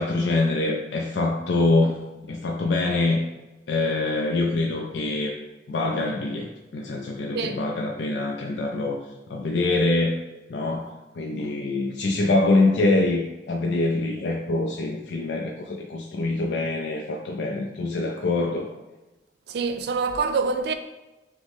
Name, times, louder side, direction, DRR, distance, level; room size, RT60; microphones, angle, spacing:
voice 1, 0.0-2.0 2.3-3.2 3.7-5.4 5.7-9.0 9.3-10.1 10.5-18.7, left 2 dB, 70° left, 0.4 m, -24 dB
voice 2, 19.5-20.7, right 4 dB, 65° right, 0.4 m, -25 dB
6.2 x 2.1 x 3.5 m
head